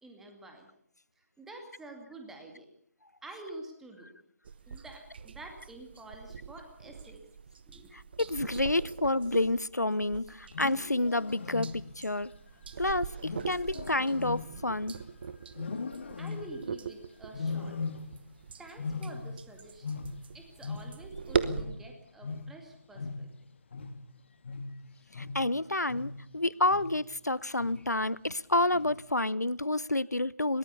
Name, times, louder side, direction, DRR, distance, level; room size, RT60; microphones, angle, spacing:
voice 1, 0.0-0.7 1.4-2.7 3.2-4.1 4.7-7.2 7.6-7.9 16.2-17.8 18.6-19.9 20.3-23.3, right 2 dB, 5° right, 2.3 m, -48 dB
sound 1, 4.4-21.6, right 6 dB, 35° right, 1.0 m, -40 dB
voice 2, 7.9-12.3 12.8-14.9 25.1-30.6, left 2 dB, 90° left, 0.7 m, -29 dB
Wild animals, 10.4-12.1 13.2-15.1 15.5-16.7 17.3-18.4 18.6-21.2 21.4-26.3 26.7-27.1 27.6-28.0 28.7-29.2, left 4 dB, 45° left, 1.7 m, -39 dB
21.0 x 18.5 x 6.9 m
figure-of-eight pair, 150°, 9 cm